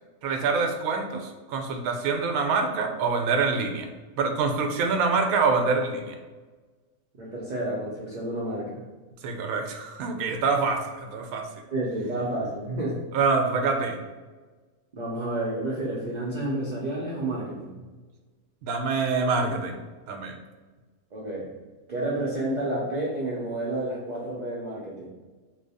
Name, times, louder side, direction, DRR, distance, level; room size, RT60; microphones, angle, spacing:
voice 1, 0.2-3.9 4.2-6.2 9.2-11.4 13.1-14.0 18.6-19.8 20.1-20.4, right 4 dB, 80° right, 4 dB, 1.0 m, -25 dB
voice 2, 7.1-8.8 11.7-13.0 14.9-17.8 21.1-21.5 21.9-25.1, right 1 dB, 50° right, -5 dB, 0.5 m, -30 dB
3.1 x 2.0 x 4.0 m, 1.3 s
omnidirectional pair, 1.5 m